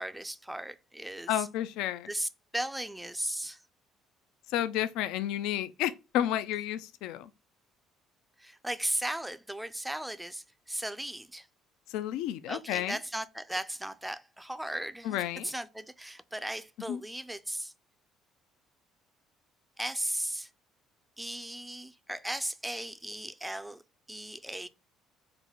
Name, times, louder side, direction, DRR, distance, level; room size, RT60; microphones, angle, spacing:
voice 1, 0.0-1.5 2.1-3.6 8.4-11.5 12.5-17.7 19.8-20.5 21.2-23.8 24.1-24.7, right 1 dB, 5° right, 0.4 m, -36 dB
voice 2, 1.3-2.1 4.5-7.3 11.9-13.0 15.0-15.5 16.9-17.0, left 12 dB, 85° left, 0.3 m, -31 dB
3.9 x 2.2 x 4.4 m
cardioid pair, 125°, 0 cm